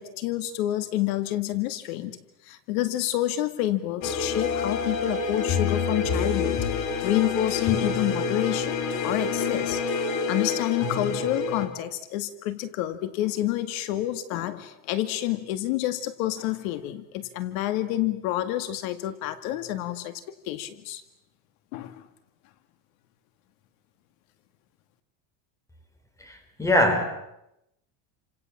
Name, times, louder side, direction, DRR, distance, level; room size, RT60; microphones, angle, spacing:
voice 1, 0.0-6.6 7.0-8.8 9.0-9.8 10.3-21.0 21.7-22.1, left 14 dB, 70° left, 11 dB, 2.1 m, -28 dB
sound 1, 4.0-11.7, left 5 dB, 40° left, 3.7 m, -27 dB
voice 2, 26.2-27.0, left 1 dB, 5° left, 6 dB, 4.5 m, -22 dB
29.5 x 26.5 x 7.5 m, 0.84 s
cardioid pair, 165°, 43 cm